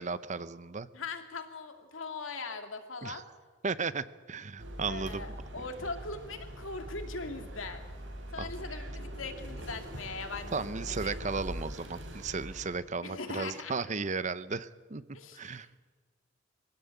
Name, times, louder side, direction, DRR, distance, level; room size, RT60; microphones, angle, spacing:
voice 1, 0.0-0.9 3.0-3.2 3.6-5.2 8.4-8.6 10.5-15.0 15.3-15.7, right 4 dB, 35° right, 15 dB, 0.7 m, -35 dB
voice 2, 0.9-3.3 4.9-7.9 8.3-11.4 13.0-13.8 15.1-15.8, left 3 dB, 80° left, 6 dB, 2.4 m, -41 dB
sound 1, 4.6-12.8, equal, 70° right, 4.1 m, -42 dB
24.5 x 16.5 x 8.3 m, 1.5 s
head